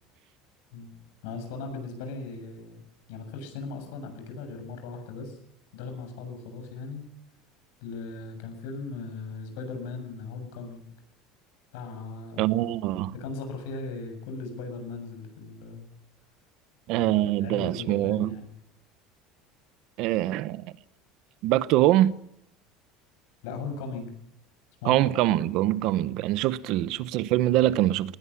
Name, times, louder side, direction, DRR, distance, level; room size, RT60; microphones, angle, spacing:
voice 1, 0.7-2.8 3.1-5.4 5.7-7.0 7.8-10.9 11.7-12.5 13.1-15.9 17.0-18.5 23.4-24.1 24.8-25.1 25.3-25.7 26.6-26.8, left 4 dB, 80° left, 7.2 m, -38 dB
voice 2, 12.4-13.1 16.9-18.4 20.0-20.7 21.4-22.1 24.8-28.2, right 14 dB, 50° right, 0.8 m, -24 dB
19.5 x 17.0 x 9.7 m
cardioid pair, 165°, 0 cm